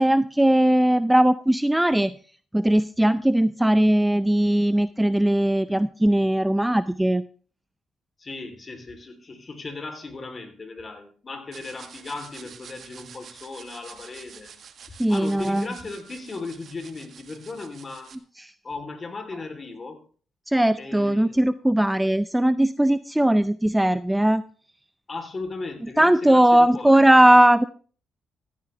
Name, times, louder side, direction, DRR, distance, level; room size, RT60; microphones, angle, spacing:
voice 1, 0.0-2.1 2.5-7.3 15.0-15.7 18.4-18.5 20.5-24.4 26.0-27.6, right 1 dB, 5° right, 14 dB, 0.5 m, -19 dB
voice 2, 8.2-14.5 14.9-18.1 18.6-20.0 20.8-21.4 25.1-27.0, left 3 dB, 35° left, 6 dB, 3.5 m, -37 dB
sound 1, 11.5-18.1, right 7 dB, 55° right, 1.7 m, -47 dB
15.5 x 14.5 x 3.4 m, 0.41 s
cardioid pair, 90°, 0 cm